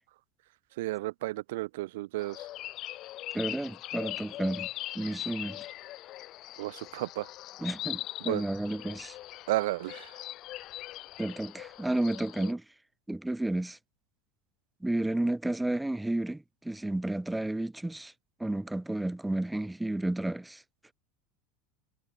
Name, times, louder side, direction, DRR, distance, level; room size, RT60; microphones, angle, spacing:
voice 1, 0.8-2.5 6.6-7.3 8.2-8.5 9.5-10.1, right 18 dB, 80° right, 0.4 m, -32 dB
sound 1, 2.2-12.5, left 15 dB, 40° left, 1.2 m, -41 dB
voice 2, 3.3-4.7 4.9-5.7 7.6-9.2 11.2-12.6 13.1-13.8 14.8-18.1 18.4-20.6, right 1 dB, 5° right, 0.5 m, -32 dB
supercardioid pair, 160°, 0 cm